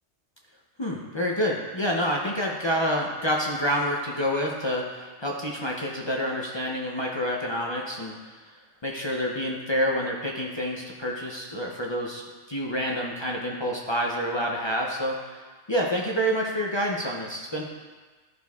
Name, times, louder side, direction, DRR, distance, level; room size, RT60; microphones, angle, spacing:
voice 1, 0.8-8.4 8.8-12.2 12.5-15.4 15.7-17.7, equal, 35° left, -2 dB, 0.4 m, -28 dB
12.0 x 4.4 x 2.3 m, 1.4 s
omnidirectional pair, 1.2 m